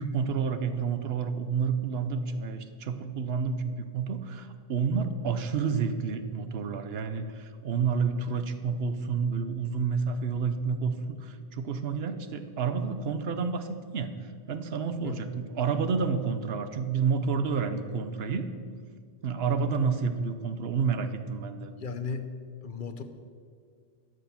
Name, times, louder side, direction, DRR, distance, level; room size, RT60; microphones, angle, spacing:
voice 1, 0.0-10.9 11.2-14.1 14.5-18.5 19.2-21.7, right 5 dB, 80° right, 10 dB, 1.0 m, -29 dB
voice 2, 21.8-22.3 22.6-23.0, left 5 dB, 55° left, 8 dB, 0.9 m, -35 dB
12.0 x 6.6 x 7.0 m, 2.1 s
omnidirectional pair, 1.0 m